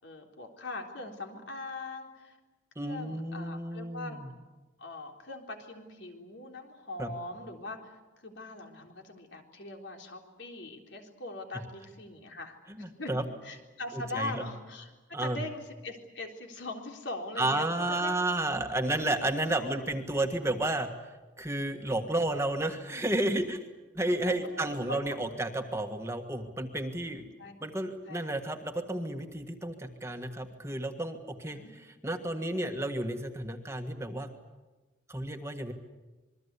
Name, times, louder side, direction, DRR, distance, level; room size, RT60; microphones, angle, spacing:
voice 1, 0.0-2.4 2.8-4.2 4.8-13.1 13.4-18.1 19.5-19.9 24.4-25.2 27.4-27.6 28.1-28.3 31.5-31.7 32.0-32.1, left 2 dB, 70° left, 2 dB, 3.8 m, -42 dB
voice 2, 2.7-4.3 7.0-7.1 12.8-13.2 14.1-14.4 15.1-15.4 17.4-20.9 21.4-23.6 23.9-27.2 27.6-34.3 35.1-35.7, right 1 dB, 15° right, 5 dB, 1.6 m, -32 dB
27.0 x 22.0 x 8.4 m, 1.2 s
head